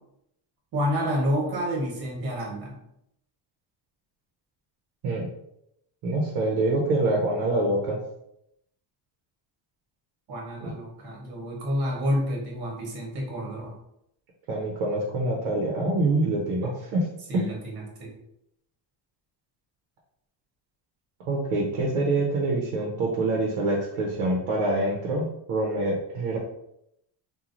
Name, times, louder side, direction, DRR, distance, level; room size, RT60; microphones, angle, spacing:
voice 1, 0.7-2.8 10.3-13.7 17.3-18.1, equal, 50° right, -1 dB, 1.1 m, -29 dB
voice 2, 6.0-8.0 10.6-10.7 14.5-17.1 17.3-17.5 21.3-26.4, right 2 dB, 90° right, -2 dB, 0.8 m, -25 dB
3.0 x 2.3 x 2.5 m, 0.79 s
cardioid pair, 135°, 48 cm